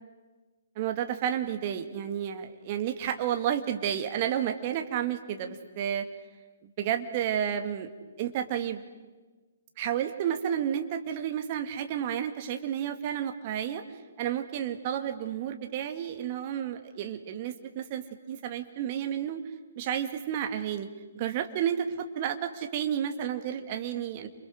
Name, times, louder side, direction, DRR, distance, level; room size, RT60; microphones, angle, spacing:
voice 1, 0.8-6.1 6.8-7.9 8.2-8.8 9.8-13.8 14.2-19.4 19.8-20.9 21.1-24.3, right 9 dB, 35° right, 7 dB, 2.1 m, -31 dB
29.5 x 27.5 x 6.4 m, 1.3 s
figure-of-eight pair, 125°, 0 cm